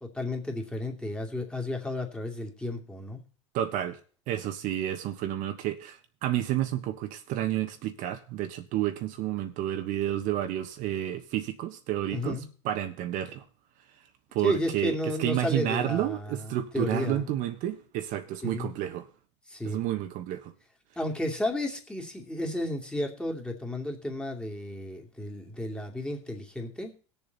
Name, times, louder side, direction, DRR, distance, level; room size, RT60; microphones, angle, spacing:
voice 1, 0.0-3.2 12.1-12.5 14.4-17.3 18.4-18.7 19.5-19.8 21.0-26.9, left 1 dB, 5° left, 2.5 m, -33 dB
voice 2, 3.5-4.0 4.3-12.4 12.6-13.4 14.3-19.1 19.6-20.5, right 12 dB, 55° right, 1.3 m, -30 dB
19.5 x 7.1 x 4.0 m
supercardioid pair, 120°, 17 cm